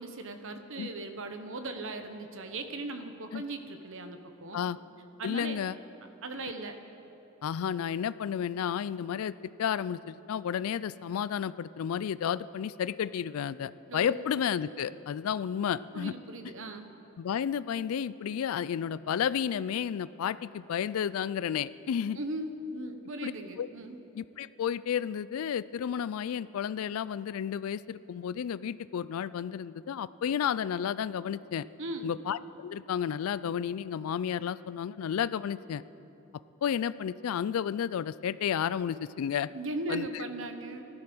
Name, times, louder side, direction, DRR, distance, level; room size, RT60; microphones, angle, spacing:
voice 1, 0.0-4.7 5.2-5.6 6.2-6.8 13.9-14.4 15.9-16.9 22.2-24.0 31.8-32.2 39.5-40.8, right 2 dB, 65° right, 7 dB, 1.0 m, -38 dB
voice 2, 5.2-5.8 7.4-16.1 17.2-22.2 23.2-23.3 23.6-23.7 24.2-31.6 32.0-35.8 36.6-39.5 39.9-40.2, left 8 dB, 80° left, 17 dB, 0.3 m, -32 dB
15.0 x 12.0 x 6.1 m, 3.0 s
head